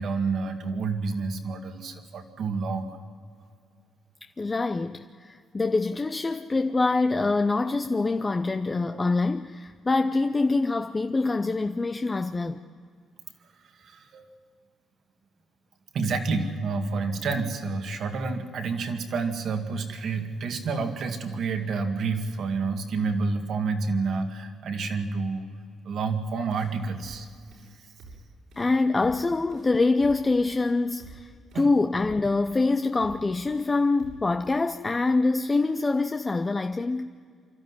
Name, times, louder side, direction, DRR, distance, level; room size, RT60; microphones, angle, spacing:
voice 1, 0.0-3.0 8.9-9.1 13.8-14.3 15.9-25.5 25.8-27.3 31.5-31.7, right 4 dB, 65° right, 2.2 m, -29 dB
voice 2, 4.4-12.6 28.6-37.1, left 3 dB, 25° left, 0.7 m, -25 dB
sound 1, 26.5-26.7 27.0-27.2 27.5-27.7 28.0-28.2 28.5-28.7 29.0-29.2 29.5-29.7 30.0-30.2 30.5-30.7 31.0-31.2 31.5-31.7 32.0-32.2 32.5-32.7 33.0-33.2 33.5-33.7 34.0-34.2, right 3 dB, 90° right, 6.5 m, -48 dB
25.5 x 13.5 x 9.8 m
cardioid pair, 90°, 0 cm